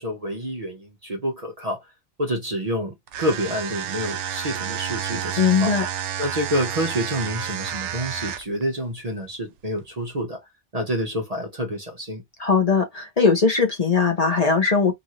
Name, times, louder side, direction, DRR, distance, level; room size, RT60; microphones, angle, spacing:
voice 1, 0.0-1.9 2.2-5.7 6.2-10.4 10.7-12.2, equal, 40° right, 0.7 m, -28 dB
sound 1, 3.1-8.6, right 9 dB, 80° right, 0.9 m, -30 dB
voice 2, 5.4-5.8 12.4-14.9, left 5 dB, 40° left, 0.8 m, -19 dB
2.9 x 2.6 x 2.8 m
omnidirectional pair, 1.2 m